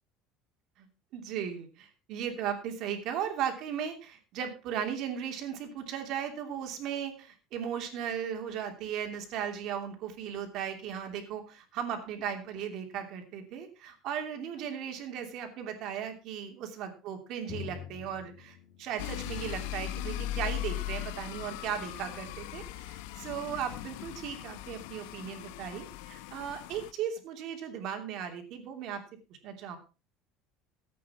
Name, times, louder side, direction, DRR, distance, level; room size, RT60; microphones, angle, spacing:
voice 1, 1.1-29.0 29.4-29.8, right 8 dB, 55° right, 5 dB, 2.8 m, -37 dB
Drum, 17.5-21.0, left 10 dB, 45° left, 1.9 m, -47 dB
sound 1, 19.0-26.9, left 14 dB, 80° left, 0.8 m, -39 dB
14.5 x 8.5 x 4.3 m, 0.32 s
cardioid pair, 145°, 0 cm